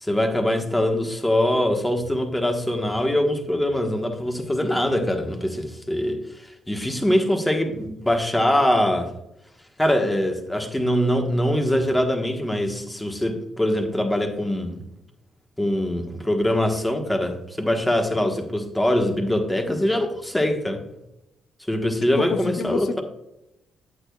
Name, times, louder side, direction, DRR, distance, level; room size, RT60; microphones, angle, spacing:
voice 1, 0.0-9.1 9.8-14.8 15.6-20.8 21.7-23.0, left 1 dB, 10° left, 1.3 m, -23 dB
voice 2, 22.2-23.0, left 5 dB, 60° left, 0.6 m, -28 dB
8.6 x 8.4 x 2.3 m
cardioid pair, 90°, 0 cm